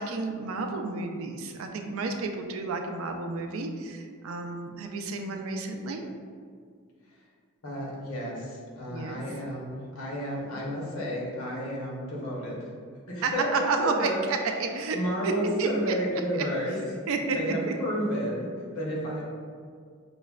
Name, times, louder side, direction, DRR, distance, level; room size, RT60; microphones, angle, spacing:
voice 1, 0.0-6.1 8.9-9.2 13.2-15.0 15.2-15.3 15.6-15.9 17.1-17.7, right 4 dB, 75° right, 4 dB, 0.4 m, -31 dB
voice 2, 7.6-12.6 13.1-14.2 14.9-16.8 17.2-18.5 18.7-19.2, equal, 85° left, -4 dB, 0.9 m, -31 dB
5.5 x 2.1 x 2.3 m, 2.1 s
head